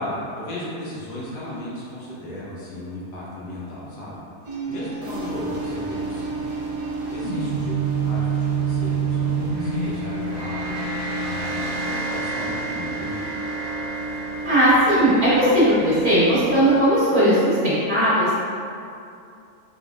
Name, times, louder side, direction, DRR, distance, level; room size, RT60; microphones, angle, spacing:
voice 1, 0.0-4.2 4.7-6.5 7.1-13.3, left 1 dB, 80° left, -7 dB, 1.5 m, -35 dB
sound 1, 4.4-16.0, right 4 dB, 60° right, 1.2 m, -29 dB
sound 2, 5.0-16.8, right 4 dB, 85° right, 1.1 m, -33 dB
voice 2, 14.4-18.4, equal, 35° right, -12 dB, 1.3 m, -18 dB
4.4 x 3.4 x 2.5 m, 2.5 s
omnidirectional pair, 1.7 m